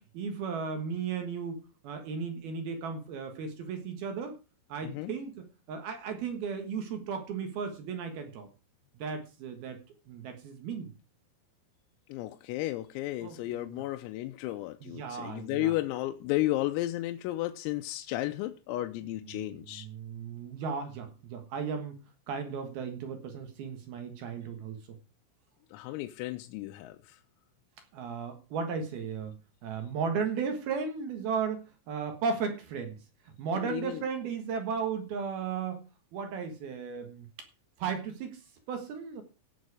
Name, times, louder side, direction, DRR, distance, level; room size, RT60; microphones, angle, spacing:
voice 1, 0.0-1.6 1.8-4.4 4.7-8.5 8.9-9.8 10.1-10.9 13.2-13.7 14.8-15.7 19.2-22.0 22.3-24.8 27.9-33.0 33.4-35.9 36.1-37.5 37.8-39.2, right 6 dB, 65° right, 2.7 m, -35 dB
voice 2, 4.8-5.1 12.1-19.9 25.7-27.2 33.6-34.0, left 16 dB, 90° left, 3.5 m, -33 dB
17.0 x 7.4 x 4.8 m
omnidirectional pair, 6.0 m